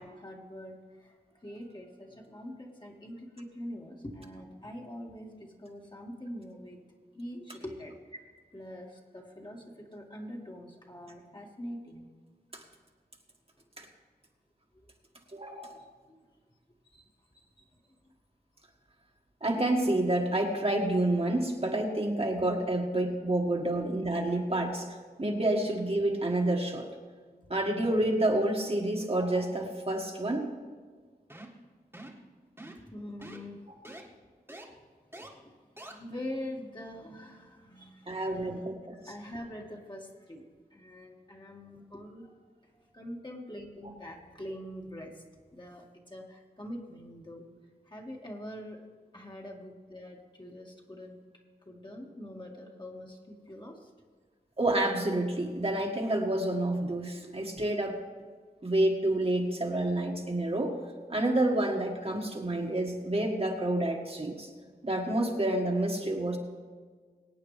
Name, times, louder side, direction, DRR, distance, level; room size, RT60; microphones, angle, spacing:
voice 1, 0.0-6.8 7.1-8.2 8.5-12.1 14.7-14.9 15.7-16.2 16.9-17.1 17.3-17.7 23.6-23.7 24.3-24.4 32.9-33.6 34.7-34.8 35.2-38.6 38.9-40.4 40.7-42.4 42.6-45.2 45.5-47.5 47.8-48.8 49.1-51.2 51.7-53.9, left 1 dB, 25° left, -1 dB, 2.0 m, -44 dB
voice 2, 15.3-15.8 19.4-24.9 25.2-26.9 27.5-30.5 38.1-39.0 43.8-43.9 54.6-58.0 58.6-60.8 61.1-64.5 64.8-66.4, right 1 dB, 35° right, 0 dB, 1.8 m, -28 dB
sound 1, 31.3-31.6 31.9-32.2 32.6-32.9 33.2-33.4 33.8-34.0 34.5-34.6 35.1-35.3 35.8-35.9, right 1 dB, 15° right, 1.8 m, -45 dB
24.0 x 8.8 x 3.4 m, 1.5 s
wide cardioid pair, 70°, 17 cm